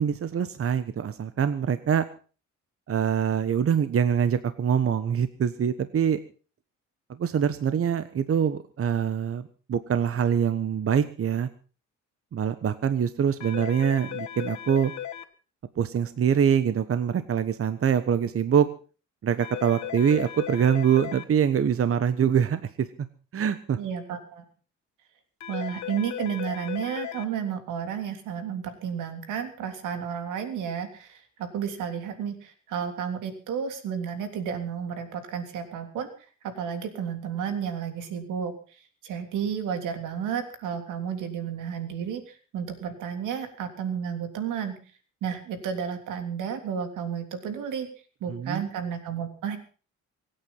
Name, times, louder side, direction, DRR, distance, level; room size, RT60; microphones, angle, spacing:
voice 1, 0.0-2.0 2.9-6.2 7.2-9.4 9.7-11.5 12.3-14.9 15.8-18.7 19.2-22.9 23.3-23.8 48.3-48.6, right 8 dB, 50° right, 12 dB, 1.2 m, -24 dB
sound 1, 13.4-15.2 19.4-21.2 25.4-27.2, left 10 dB, 65° left, 1.7 m, -36 dB
voice 2, 23.7-24.4 25.5-36.1 36.4-44.8 45.2-47.9 48.2-49.6, right 7 dB, 90° right, 7 dB, 3.3 m, -32 dB
24.5 x 9.1 x 5.6 m, 0.38 s
cardioid pair, 90°, 30 cm